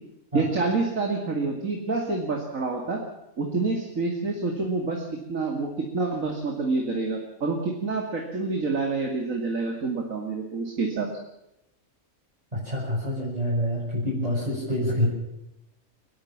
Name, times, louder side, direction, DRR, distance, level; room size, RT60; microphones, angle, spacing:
voice 1, 0.3-3.0 3.4-11.1, right 3 dB, 70° right, 1 dB, 2.8 m, -27 dB
voice 2, 12.5-15.1, left 1 dB, 25° right, -7 dB, 7.0 m, -27 dB
29.5 x 12.5 x 7.3 m, 0.89 s
omnidirectional pair, 1.5 m